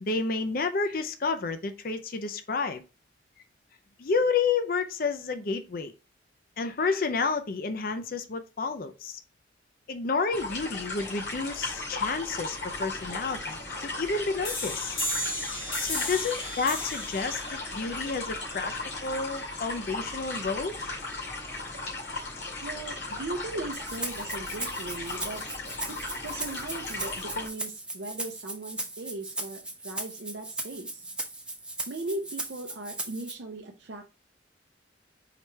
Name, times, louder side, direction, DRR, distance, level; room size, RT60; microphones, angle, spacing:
voice 1, 0.0-2.8 4.0-5.9 6.6-9.2 9.9-15.0 15.8-18.7 19.0-20.7, left 4 dB, 50° left, 0.5 m, -30 dB
sound 1, 10.3-27.5, left 2 dB, 75° left, 2.2 m, -36 dB
sound 2, 14.4-19.9, left 1 dB, 30° left, 1.1 m, -35 dB
voice 2, 22.6-25.4 25.9-31.0 31.9-34.1, right 2 dB, 70° right, 0.6 m, -38 dB
Rattle (instrument), 23.7-33.3, right 2 dB, 5° right, 0.6 m, -37 dB
4.9 x 3.2 x 3.2 m
head